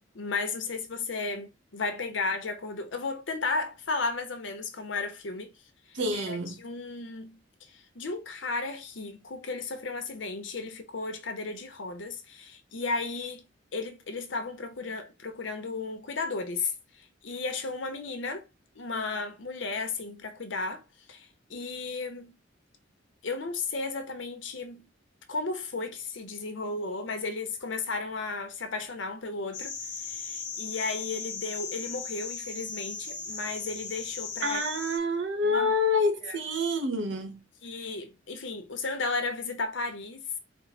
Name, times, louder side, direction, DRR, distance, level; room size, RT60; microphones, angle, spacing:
voice 1, 0.0-5.5 5.9-18.5 18.7-20.8 21.1-22.4 23.2-24.9 25.3-34.6 35.4-35.7 36.2-36.4 37.6-40.3, left 3 dB, 75° left, 0.8 m, -34 dB
voice 2, 5.9-6.6 34.4-37.4, left 2 dB, 70° right, 0.9 m, -27 dB
sound 1, 29.5-35.0, left 5 dB, 45° left, 0.9 m, -37 dB
4.5 x 2.1 x 4.1 m
head